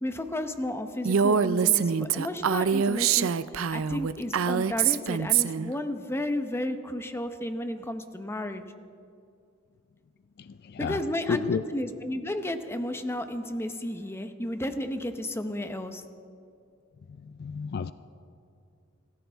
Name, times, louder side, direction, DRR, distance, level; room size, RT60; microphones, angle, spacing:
voice 1, 0.0-3.3 3.7-8.6 10.8-16.0, left 1 dB, 10° left, 0.9 m, -32 dB
Female speech woman speaking, 1.0-5.7, right 7 dB, 85° right, 0.5 m, -24 dB
voice 2, 10.4-11.6 17.2-17.9, left 5 dB, 50° left, 0.4 m, -31 dB
26.0 x 15.0 x 3.5 m
head